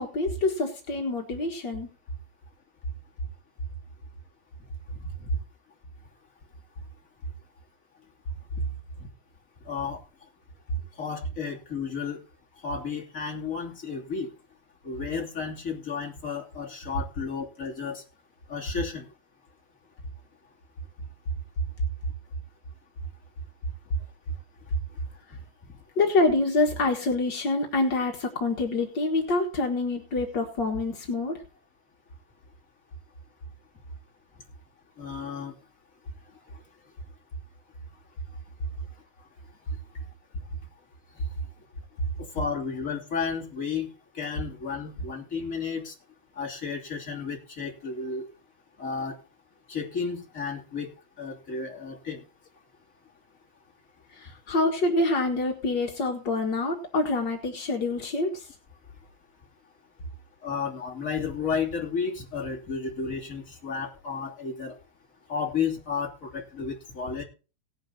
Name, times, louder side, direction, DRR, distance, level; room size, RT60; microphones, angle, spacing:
voice 1, 0.0-1.9 25.9-31.4 54.1-58.5, left 2 dB, 60° left, 2 dB, 1.1 m, -26 dB
voice 2, 9.6-10.0 10.9-12.2 12.6-14.3 14.8-18.0 18.5-19.1 35.0-35.5 36.5-36.6 42.2-45.9 46.3-48.3 48.8-49.2 49.7-50.9 51.2-52.2 60.4-64.8 65.3-67.2, left 5 dB, 20° left, -1 dB, 2.7 m, -32 dB
18.0 x 10.5 x 2.8 m, 0.33 s
omnidirectional pair, 4.7 m